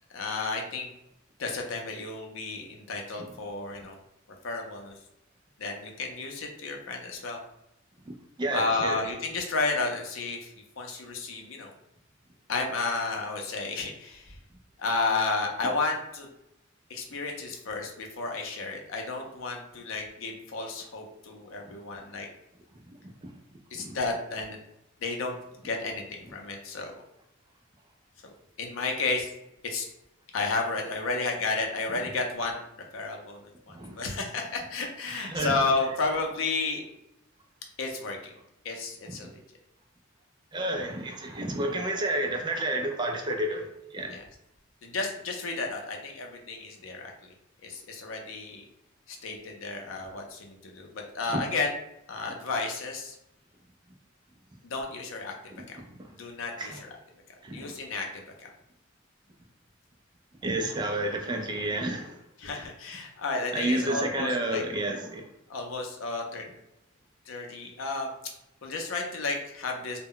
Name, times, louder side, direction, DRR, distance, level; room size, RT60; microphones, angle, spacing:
voice 1, 0.1-0.9 1.4-4.0 4.4-4.9 5.6-7.4 8.5-10.5 10.8-11.7 12.5-14.3 14.8-16.3 16.9-22.3 23.7-24.6 25.0-26.9 28.6-29.3 29.6-29.9 30.3-32.6 32.9-36.8 37.8-38.3 38.6-39.4 44.1-44.2 44.8-47.3 47.6-48.6 49.1-51.7 52.1-53.2 54.6-55.8 56.1-56.7 57.5-58.5 62.4-64.6 65.5-66.5 67.3-68.1 68.6-70.0, left 3 dB, 80° left, 2 dB, 0.5 m, -32 dB
voice 2, 8.4-9.0 23.2-23.3 23.7-24.0 33.7-34.0 35.1-35.5 40.5-44.2 51.3-51.4 56.6-56.8 57.4-57.7 60.4-62.2 62.6-62.7 63.5-65.3, right 1 dB, 20° right, 3 dB, 0.3 m, -30 dB
2.1 x 2.0 x 3.6 m, 0.85 s
head